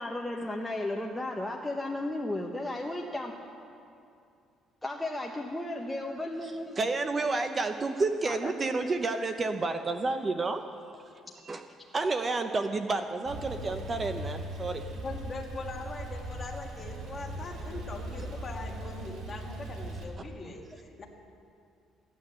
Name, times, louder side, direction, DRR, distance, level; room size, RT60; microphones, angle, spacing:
voice 1, 0.0-3.3 4.8-6.8 8.2-8.7 19.4-19.6, left 1 dB, 5° left, -1 dB, 0.9 m, -34 dB
voice 2, 6.8-10.6 11.4-11.6 11.9-14.8 18.2-18.3, right 3 dB, 25° right, 7 dB, 0.6 m, -30 dB
Male speech man speaking / Car / Idling, 13.3-20.0, right 1 dB, 70° right, 2.7 m, -39 dB
voice 3, 15.0-21.1, left 3 dB, 30° left, 1 dB, 1.8 m, -41 dB
15.5 x 9.7 x 7.5 m, 2.5 s
cardioid pair, 130°, 0 cm